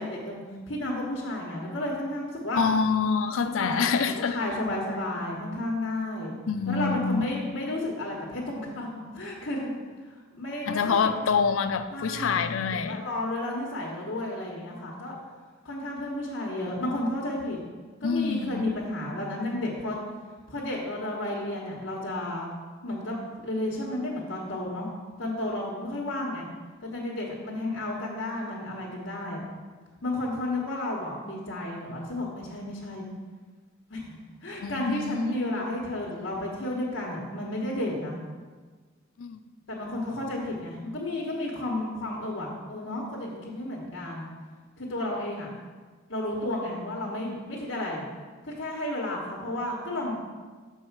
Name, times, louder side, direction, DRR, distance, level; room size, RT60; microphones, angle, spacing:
voice 1, 0.0-2.6 3.6-6.3 6.7-9.7 10.1-11.1 11.9-12.4 12.9-15.1 15.6-17.6 18.0-20.0 20.5-22.5 22.8-24.9 25.2-26.4 26.8-29.4 30.0-33.1 33.9-38.2 39.7-44.3 44.8-45.5 46.1-48.0 48.4-50.2, left 1 dB, 60° left, -5 dB, 1.2 m, -32 dB
voice 2, 2.5-4.4 6.5-7.2 10.7-13.0 18.0-18.7 34.6-35.4 39.2-39.4, left 5 dB, 85° left, 9 dB, 0.5 m, -26 dB
6.4 x 4.6 x 5.9 m, 1.4 s
head